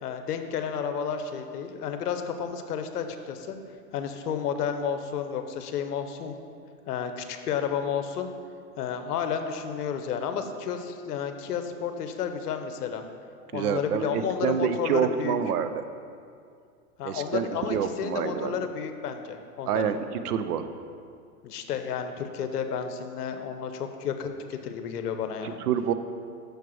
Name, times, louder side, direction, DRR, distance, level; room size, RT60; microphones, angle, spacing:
voice 1, 0.0-3.6 3.9-6.4 6.9-8.3 8.8-13.0 13.5-15.4 17.0-19.9 21.4-25.6, left 7 dB, 70° left, 7 dB, 0.9 m, -31 dB
voice 2, 13.5-15.8 17.0-18.7 19.7-20.0 20.2-20.6 25.4-25.9, right 8 dB, 70° right, 10 dB, 0.6 m, -27 dB
6.6 x 4.7 x 6.3 m, 2.3 s
hypercardioid pair, 125°, 48 cm